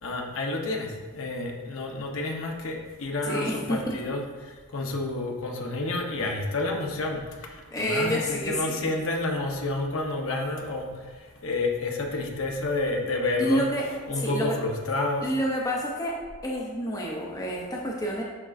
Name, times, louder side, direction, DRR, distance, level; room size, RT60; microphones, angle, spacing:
voice 1, 0.0-13.6 14.1-15.3, left 2 dB, 60° left, 1 dB, 0.8 m, -30 dB
voice 2, 3.2-3.6 3.9-4.0 7.7-8.9 13.4-13.9 14.1-14.6 15.2-16.2 16.4-18.2, equal, 15° left, -2 dB, 0.6 m, -28 dB
11.0 x 3.7 x 2.5 m, 1.4 s
head